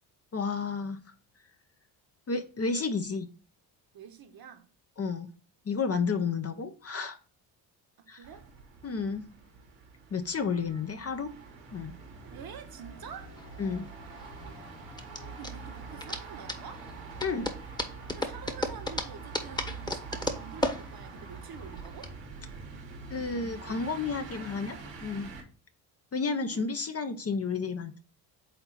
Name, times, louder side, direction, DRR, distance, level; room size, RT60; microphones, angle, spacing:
voice 1, 0.3-1.0 2.3-3.3 5.0-5.3 5.7-7.2 8.1-8.2 8.8-9.2 10.1-11.3 11.7-11.9 13.6-13.9 17.2-17.5 23.1-25.3 26.1-28.0, left 4 dB, 30° left, 0.7 m, -31 dB
voice 2, 3.9-4.7 8.0-8.5 10.4-10.8 12.3-13.4 15.3-16.9 18.2-22.1 26.4-26.7, right 7 dB, 45° right, 1.1 m, -47 dB
sound 1, 8.2-25.4, right 4 dB, 85° right, 1.9 m, -45 dB
sound 2, 12.8-22.7, left 2 dB, 85° left, 1.2 m, -53 dB
sound 3, 13.2-22.1, left 1 dB, 10° left, 1.1 m, -36 dB
4.3 x 3.9 x 5.6 m
supercardioid pair, 60°, 49 cm